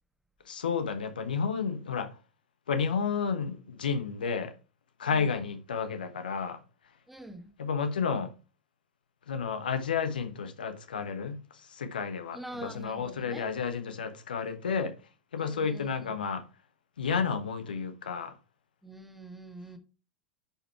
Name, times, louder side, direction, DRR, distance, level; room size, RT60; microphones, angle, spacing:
voice 1, 0.4-2.2 2.7-4.5 5.0-6.6 7.6-8.3 9.3-14.9 15.3-16.4 17.0-18.3, left 6 dB, 70° left, 1.1 m, -31 dB
voice 2, 7.1-7.5 12.3-13.5 15.4-16.2 18.8-19.8, right 1 dB, 5° right, 1.5 m, -45 dB
10.5 x 5.0 x 4.4 m
figure-of-eight pair, 85°, 5 cm